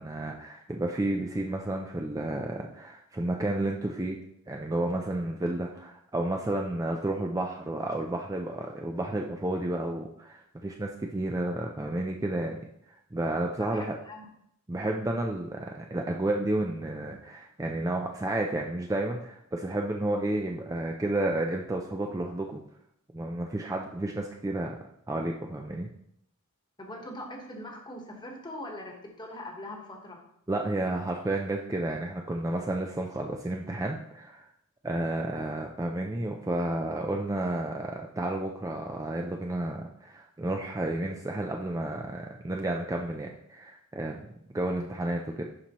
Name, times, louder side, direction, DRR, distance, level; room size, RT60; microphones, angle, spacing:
voice 1, 0.0-4.2 4.5-12.6 13.1-14.0 14.7-22.6 23.1-24.8 25.1-25.9 30.5-34.5 34.8-45.4, right 1 dB, 15° right, 1 dB, 0.4 m, -31 dB
voice 2, 13.6-14.3 26.8-30.2, left 1 dB, 20° left, 2 dB, 1.2 m, -41 dB
11.5 x 4.4 x 3.0 m, 0.73 s
head